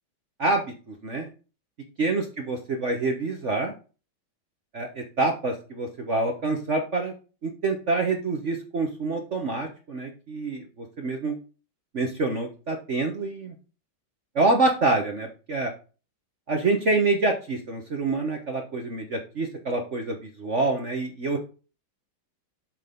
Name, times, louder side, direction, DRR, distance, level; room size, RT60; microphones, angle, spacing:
voice 1, 0.4-1.3 2.0-3.7 4.7-7.1 7.4-11.4 11.9-13.5 14.3-15.7 16.5-21.4, right 3 dB, 45° right, 3 dB, 1.3 m, -26 dB
7.4 x 6.3 x 3.8 m, 0.34 s
omnidirectional pair, 2.2 m